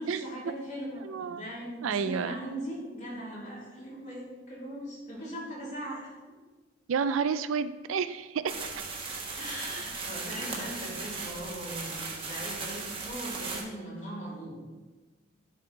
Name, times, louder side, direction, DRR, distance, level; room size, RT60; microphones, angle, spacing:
voice 1, 0.0-6.1 9.4-14.6, equal, 40° left, -6 dB, 2.7 m, -39 dB
voice 2, 1.0-1.4 1.8-2.3 6.9-8.4, right 6 dB, 85° right, 13 dB, 0.4 m, -30 dB
sound 1, 8.5-13.6, right 4 dB, 25° right, 1.1 m, -37 dB
10.5 x 4.3 x 3.9 m, 1.3 s
head